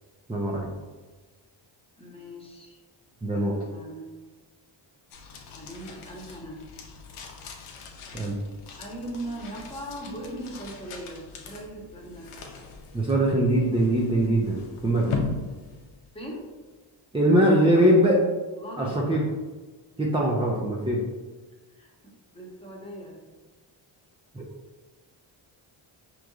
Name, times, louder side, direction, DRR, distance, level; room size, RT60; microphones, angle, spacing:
voice 1, 0.3-0.7 3.2-3.5 8.1-8.3 12.9-15.1 17.1-18.2 18.8-19.2 20.0-21.0 24.3-24.4, right 1 dB, 10° right, -3 dB, 0.5 m, -22 dB
voice 2, 2.0-2.8 3.3-4.1 5.6-6.6 8.8-12.5 16.1-16.5 18.6-19.0 21.7-23.2, right 1 dB, 10° left, -3 dB, 1.0 m, -39 dB
sound 1, 5.1-16.5, left 4 dB, 85° left, 0.7 m, -39 dB
5.0 x 3.1 x 2.4 m, 1.3 s
cardioid pair, 90°, 48 cm